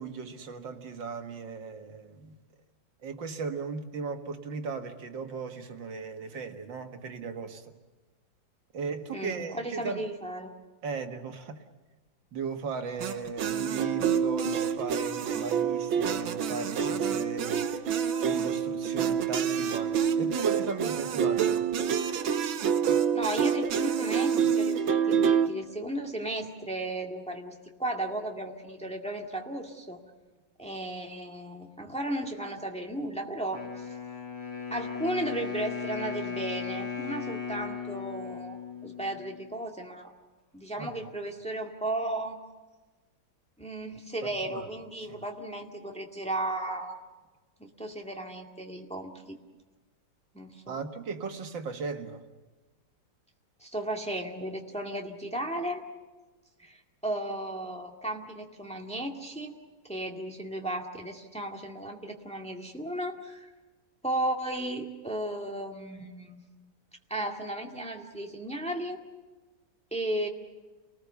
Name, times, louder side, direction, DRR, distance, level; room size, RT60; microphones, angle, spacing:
voice 1, 0.0-2.4 3.0-7.8 8.7-10.0 10.8-11.6 12.3-21.7 40.8-41.1 44.2-44.7 45.0-45.2 50.7-52.2, right 5 dB, 70° right, 2.3 m, -37 dB
voice 2, 9.1-10.5 23.1-30.0 30.6-33.9 34.7-38.6 38.8-40.1 40.5-42.4 43.6-47.0 47.6-49.4 50.3-50.7 53.6-55.8 56.6-59.5 59.9-63.5 64.0-66.4 67.1-69.0 69.9-70.3, right 1 dB, 5° left, 1.9 m, -35 dB
sound 1, 13.0-25.5, right 7 dB, 85° right, 1.8 m, -27 dB
Wind instrument woodwind instrument, 33.5-39.5, left 6 dB, 70° left, 4.7 m, -37 dB
30.0 x 19.5 x 6.9 m
omnidirectional pair, 2.1 m